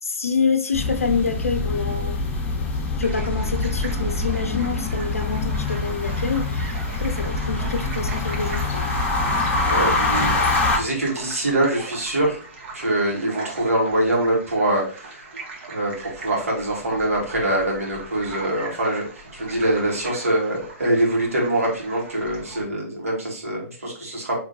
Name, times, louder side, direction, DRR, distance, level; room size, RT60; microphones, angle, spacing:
voice 1, 0.0-2.2 3.0-8.9, left 5 dB, 75° left, 0.5 m, -26 dB
sound 1, 0.7-10.8, left 3 dB, 20° left, 1.0 m, -24 dB
sound 2, 3.0-22.6, right 3 dB, 50° right, 1.2 m, -39 dB
voice 2, 9.7-12.4 12.7-15.2 15.7-19.1 19.3-24.4, right 1 dB, 75° right, 1.9 m, -24 dB
5.0 x 3.2 x 2.7 m
figure-of-eight pair, 115°, 8 cm